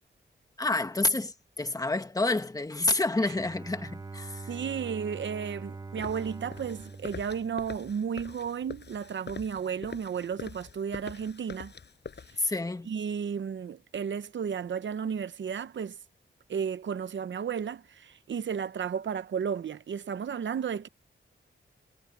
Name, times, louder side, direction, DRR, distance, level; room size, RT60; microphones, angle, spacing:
voice 1, 0.6-4.4 12.4-12.9, left 2 dB, 15° left, 1.4 m, -28 dB
Bowed string instrument, 3.2-8.1, right 4 dB, 20° right, 0.5 m, -43 dB
voice 2, 4.5-11.7 12.4-12.5 12.8-16.0 16.5-20.9, right 7 dB, 65° right, 0.7 m, -33 dB
sound 1, 6.0-12.4, left 5 dB, 60° left, 6.2 m, -44 dB
wide cardioid pair, 160°, 20 cm